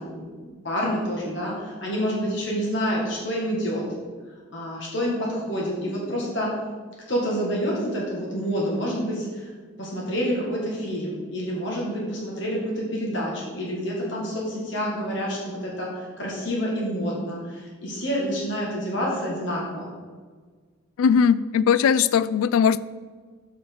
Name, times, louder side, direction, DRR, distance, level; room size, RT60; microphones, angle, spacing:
voice 1, 0.0-3.8 4.5-6.5 7.1-9.5 9.8-19.9, equal, 60° left, -4 dB, 1.9 m, -28 dB
voice 2, 21.0-22.8, left 7 dB, 90° left, 16 dB, 0.3 m, -19 dB
6.0 x 5.4 x 6.2 m, 1.5 s
head